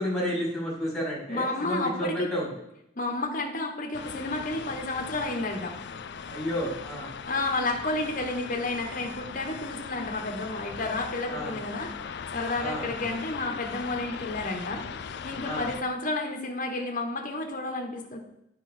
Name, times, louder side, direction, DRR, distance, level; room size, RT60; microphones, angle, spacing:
voice 1, 0.0-2.5 6.3-7.1 11.3-11.5 12.6-12.9 15.4-15.7, equal, ahead, -5 dB, 3.4 m, -31 dB
voice 2, 1.3-2.3 2.9-5.8 7.3-11.9 12.3-18.2, left 2 dB, 45° left, 2 dB, 1.4 m, -31 dB
sound 1, 3.9-15.8, left 6 dB, 60° left, 0.4 m, -39 dB
9.5 x 5.7 x 4.5 m, 0.80 s
head